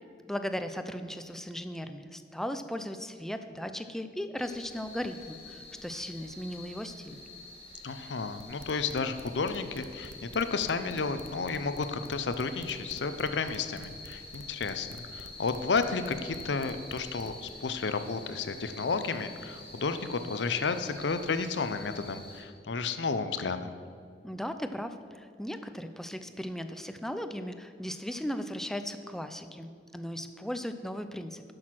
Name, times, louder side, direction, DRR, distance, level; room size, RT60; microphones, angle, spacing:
voice 1, 0.3-7.2 24.2-31.5, equal, ahead, 9 dB, 0.4 m, -37 dB
sound 1, 4.4-22.4, left 2 dB, 35° left, 1.8 m, -47 dB
voice 2, 7.8-23.7, left 4 dB, 85° left, 10 dB, 0.6 m, -32 dB
sound 2, 8.4-17.5, right 3 dB, 90° right, 0.7 m, -49 dB
10.5 x 6.4 x 5.9 m, 2.3 s
head